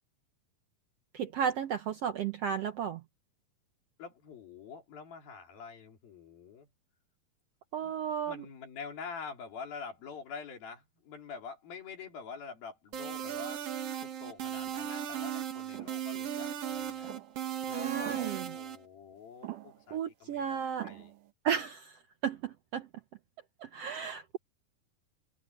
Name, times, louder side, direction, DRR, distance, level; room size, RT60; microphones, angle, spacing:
voice 1, 1.1-3.0 7.7-8.4 17.8-18.5 19.9-20.9 21.4-22.9 23.6-24.4, right 8 dB, 85° right, 1.3 m, -34 dB
voice 2, 4.0-6.7 7.8-7.9 8.3-13.6 14.0-17.1 17.7-21.1, left 5 dB, 85° left, 5.5 m, -46 dB
sound 1, 12.9-18.8, right 9 dB, 50° right, 2.2 m, -37 dB
sound 2, 15.7-16.0 17.0-17.5 18.0-18.6 19.4-19.9 20.8-21.3, right 15 dB, 70° right, 2.7 m, -44 dB
open air
omnidirectional pair, 4.1 m